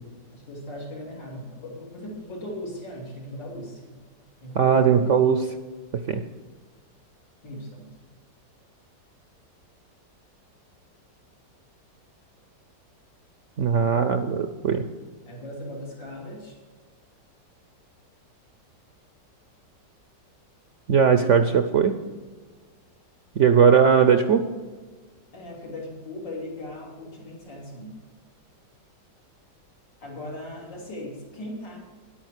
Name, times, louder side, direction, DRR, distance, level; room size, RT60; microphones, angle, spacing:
voice 1, 0.3-3.9 4.4-5.1 7.4-7.9 15.3-16.6 25.3-28.0 30.0-31.8, left 1 dB, 85° left, -2 dB, 3.5 m, -38 dB
voice 2, 4.5-5.5 6.1-6.2 13.6-14.8 20.9-22.0 23.4-24.4, right 7 dB, 65° right, 8 dB, 0.7 m, -19 dB
10.5 x 8.8 x 6.5 m, 1.4 s
omnidirectional pair, 1.9 m